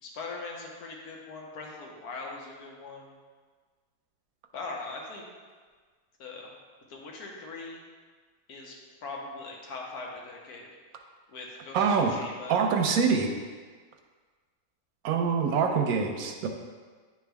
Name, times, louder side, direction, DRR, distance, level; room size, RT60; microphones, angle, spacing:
voice 1, 0.0-3.1 4.5-5.2 6.2-6.5 6.9-7.8 8.5-8.8 9.0-10.7 11.3-12.6, left 3 dB, 70° left, -1 dB, 1.5 m, -41 dB
voice 2, 11.7-12.1 12.5-13.3 15.0-16.5, right 5 dB, 65° right, 3 dB, 1.1 m, -25 dB
9.7 x 3.5 x 3.4 m, 1.5 s
omnidirectional pair, 1.7 m